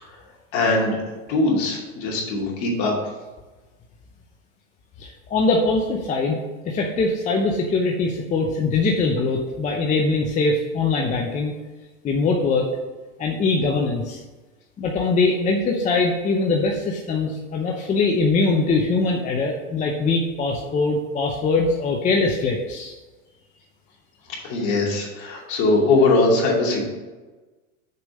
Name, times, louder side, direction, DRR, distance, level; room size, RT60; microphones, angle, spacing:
voice 1, 0.5-1.0 1.3-2.9 24.4-26.8, left 2 dB, 45° left, -2 dB, 2.8 m, -21 dB
voice 2, 5.0-6.4 6.6-11.5 12.0-12.7 13.2-14.2 14.8-22.9, left 3 dB, 20° left, 1 dB, 0.7 m, -22 dB
6.7 x 5.2 x 6.3 m, 1.2 s
supercardioid pair, 140°, 41 cm